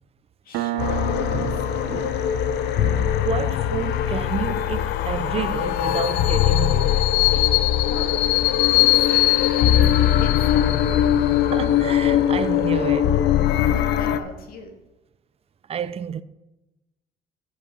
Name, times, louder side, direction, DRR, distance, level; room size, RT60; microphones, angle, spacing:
voice 1, 0.4-1.5 7.8-8.2 8.7-9.7 10.2-10.8 13.6-14.8, left 4 dB, 60° left, 2.1 m, -39 dB
Piano, 0.5-7.7, right 13 dB, 85° right, 0.7 m, -36 dB
sound 1, 0.8-14.2, left 11 dB, 80° left, 0.7 m, -20 dB
voice 2, 2.8-7.1 7.3-7.5 8.9-9.6 11.4-13.2 15.7-16.2, right 8 dB, 35° right, 0.6 m, -30 dB
14.0 x 6.4 x 5.5 m
cardioid pair, 110°, 17 cm